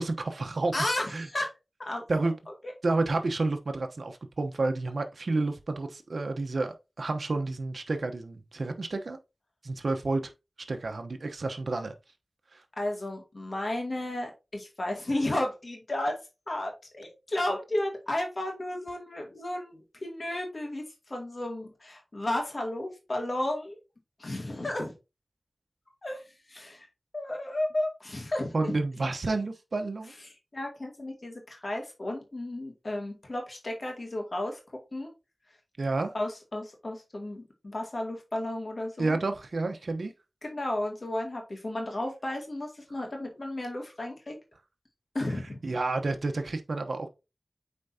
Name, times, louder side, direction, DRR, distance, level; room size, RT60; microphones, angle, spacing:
voice 1, 0.0-0.7 1.1-1.3 2.1-2.3 2.8-9.2 9.6-10.3 10.7-11.9 12.5-12.6 28.5-30.1 35.8-36.1 39.0-40.1 45.6-47.1, right 3 dB, 85° right, 0.9 m, -30 dB
voice 2, 0.7-1.5 1.8-2.0 2.6-2.7 12.8-16.2 16.5-23.8 24.2-25.0 26.0-26.9 27.1-28.8 30.5-34.6 34.9-35.1 36.1-39.2 40.4-44.4 45.1-45.8, left 1 dB, 60° left, 2.4 m, -33 dB
8.4 x 4.5 x 2.8 m
wide cardioid pair, 50°, 0 cm